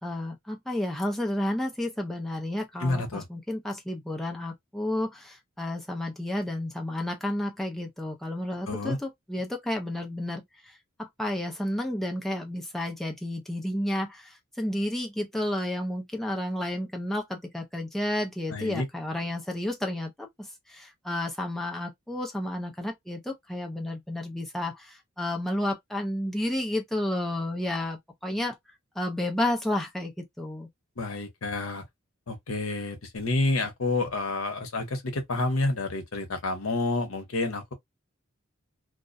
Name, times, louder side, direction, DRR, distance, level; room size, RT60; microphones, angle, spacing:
voice 1, 0.0-28.6 29.0-30.7, left 1 dB, ahead, 0.4 m, -31 dB
voice 2, 2.8-3.2 8.7-9.0 18.5-18.8 31.0-31.8 32.3-37.7, left 2 dB, 75° left, 0.8 m, -29 dB
2.3 x 2.1 x 2.5 m
head